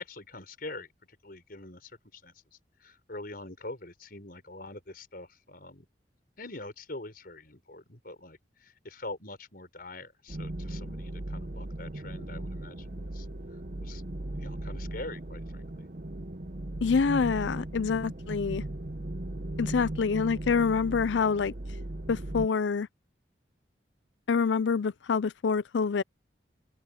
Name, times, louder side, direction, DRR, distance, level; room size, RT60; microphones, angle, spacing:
voice 1, 0.0-5.9 6.4-13.3 13.8-14.0 14.4-15.8 19.6-19.9, left 2 dB, 55° left, 5.6 m, -44 dB
sound 1, 10.3-22.5, right 1 dB, 50° right, 1.0 m, -37 dB
voice 2, 16.8-18.6 19.6-21.5 22.1-22.9 24.3-26.0, left 5 dB, 85° left, 0.5 m, -26 dB
open air
head